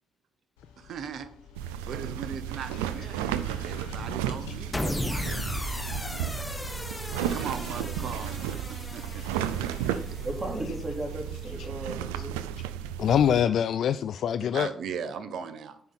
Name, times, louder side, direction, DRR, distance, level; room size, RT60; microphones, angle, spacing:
sound 1, 0.6-11.1, left 5 dB, 90° left, 1.1 m, -50 dB
voice 1, 0.8-1.3 1.8-3.3 3.6-5.5 6.9-7.0 7.3-10.3 11.8-12.0 14.5-15.8, right 6 dB, 70° right, 11 dB, 1.0 m, -39 dB
sound 2, 1.5-13.4, right 10 dB, 90° right, 0.4 m, -34 dB
sound 3, 4.7-11.1, left 1 dB, 20° left, 1.5 m, -36 dB
voice 2, 10.2-12.4, right 1 dB, 40° right, 2 dB, 3.1 m, -35 dB
voice 3, 13.0-14.7, left 9 dB, 70° left, 13 dB, 0.3 m, -25 dB
9.1 x 5.4 x 6.0 m, 0.64 s
hypercardioid pair, 40°, 0 cm